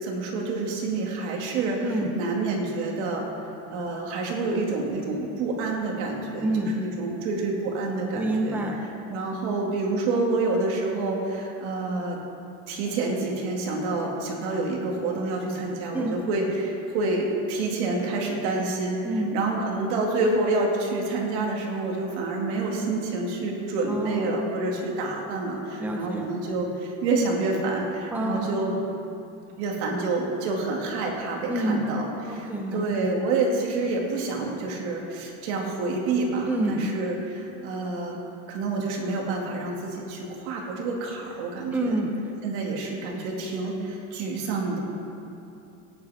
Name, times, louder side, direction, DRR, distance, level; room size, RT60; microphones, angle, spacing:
voice 1, 0.0-3.3 3.7-8.6 9.1-12.2 12.7-19.0 19.3-28.7 29.6-38.2 38.5-42.0 42.4-44.8, right 3 dB, 90° right, 0 dB, 2.4 m, -28 dB
voice 2, 1.8-2.1 6.4-6.8 8.2-8.8 15.9-16.2 19.0-19.4 23.9-24.5 25.8-26.3 28.1-28.6 31.5-31.9 32.3-33.2 36.5-37.0 41.7-42.1, right 1 dB, 5° right, 1 dB, 0.7 m, -27 dB
17.5 x 10.0 x 3.6 m, 2.9 s
cardioid pair, 175°, 33 cm